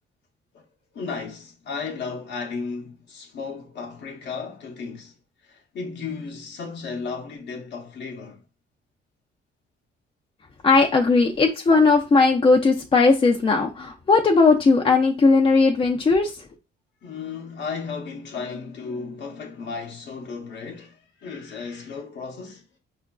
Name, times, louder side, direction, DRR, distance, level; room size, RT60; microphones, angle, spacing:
voice 1, 0.9-5.1 5.4-8.4 11.2-11.3 17.0-22.6, left 5 dB, 60° left, 0.7 m, -34 dB
voice 2, 10.6-16.4, left 4 dB, 25° left, 0.5 m, -18 dB
4.9 x 2.4 x 2.2 m
cardioid pair, 90°, 20 cm